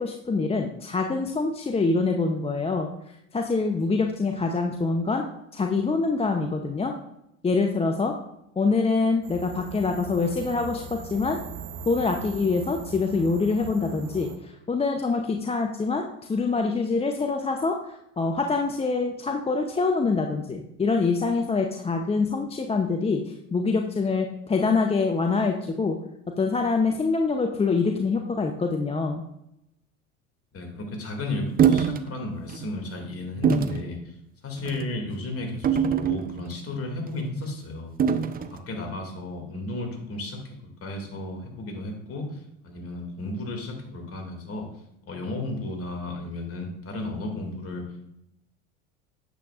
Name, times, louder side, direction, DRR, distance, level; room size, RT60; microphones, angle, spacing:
voice 1, 0.0-2.9 3.3-5.2 5.5-6.9 7.4-8.1 8.6-11.4 11.9-26.0 26.4-29.2, left 4 dB, 15° left, 4 dB, 0.7 m, -25 dB
sound 1, 9.2-14.4, right 6 dB, 65° right, 1.0 m, -40 dB
voice 2, 30.5-34.0 34.4-37.9 38.5-40.4 40.8-42.3 42.6-44.7 45.1-47.9, left 2 dB, 35° left, 3 dB, 2.3 m, -33 dB
sound 2, 31.6-32.0 32.5-32.7 33.4-33.8 34.6-34.9 35.6-36.6 38.0-38.5, right 7 dB, 25° right, 0.5 m, -23 dB
9.0 x 7.8 x 2.4 m, 0.84 s
hypercardioid pair, 75°, 38 cm